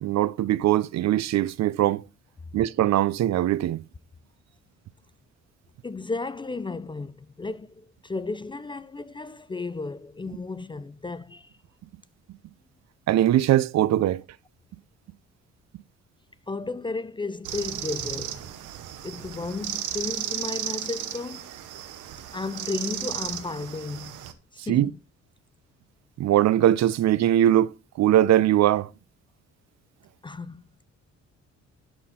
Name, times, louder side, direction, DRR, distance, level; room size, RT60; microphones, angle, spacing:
voice 1, 0.0-2.0 2.5-3.8 13.1-14.2 24.6-24.9 26.2-27.7 28.0-28.9, right 12 dB, 60° right, 0.5 m, -21 dB
voice 2, 5.8-11.5 16.5-18.5 19.0-21.5 22.3-24.3 24.5-25.0 30.2-30.8, left 3 dB, 15° left, 0.4 m, -34 dB
sound 1, 17.4-24.3, right 11 dB, 90° right, 1.1 m, -34 dB
12.5 x 4.3 x 4.3 m
cardioid pair, 90°, 30 cm